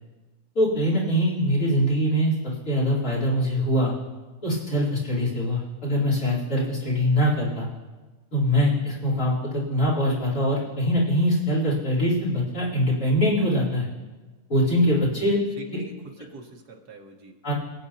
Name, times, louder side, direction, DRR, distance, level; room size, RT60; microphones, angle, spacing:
voice 1, 0.5-2.3 2.6-3.9 4.4-7.7 8.3-13.9 14.5-15.4 17.4-17.5, equal, 75° left, -6 dB, 4.2 m, -23 dB
voice 2, 15.0-15.3 15.6-17.4, right 3 dB, 85° right, 2 dB, 1.9 m, -43 dB
22.5 x 8.9 x 2.8 m, 1.3 s
omnidirectional pair, 1.6 m